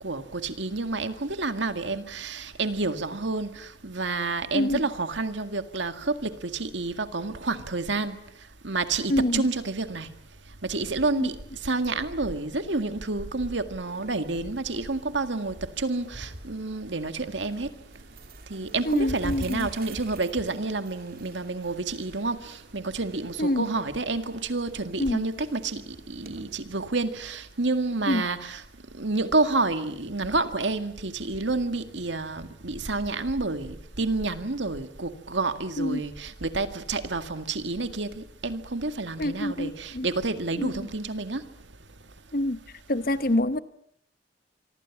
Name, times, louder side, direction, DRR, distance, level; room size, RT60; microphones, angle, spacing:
voice 1, 0.0-8.2 8.6-10.1 10.6-17.7 18.5-28.6 28.9-41.5, right 3 dB, 80° right, 1.9 m, -29 dB
voice 2, 9.1-9.4 11.2-11.3 18.8-19.7 23.4-23.7 25.0-25.3 28.1-28.2 35.8-36.0 39.2-40.1 40.6-40.7 42.3-42.6 42.9-43.6, left 1 dB, 50° left, 1.1 m, -26 dB
sound 1, 13.9-26.6, right 1 dB, 50° right, 2.8 m, -46 dB
26.0 x 25.0 x 7.3 m
head